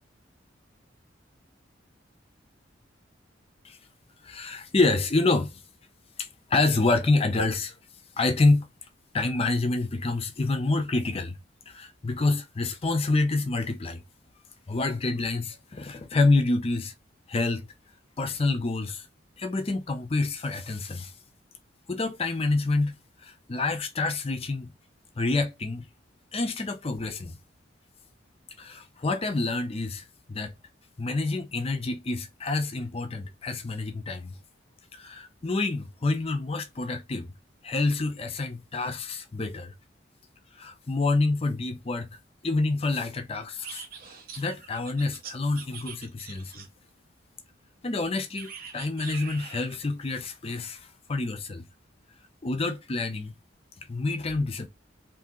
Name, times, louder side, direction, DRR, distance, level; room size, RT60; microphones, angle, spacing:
voice 1, 4.2-5.6 6.2-7.7 8.2-8.7 9.1-11.4 11.7-14.0 14.7-16.9 17.3-17.7 18.2-19.0 19.4-21.1 21.9-23.0 23.2-24.7 25.2-25.8 26.3-27.4 28.6-30.5 31.0-34.4 34.9-37.3 37.6-39.7 40.6-42.1 42.4-43.8 44.3-46.7 47.8-51.6 52.4-53.3 53.9-54.7, left 3 dB, 30° left, 0.5 m, -27 dB
sound 1, 43.6-46.9 48.4-49.8, right 6 dB, 50° right, 0.6 m, -43 dB
2.7 x 2.7 x 3.6 m
head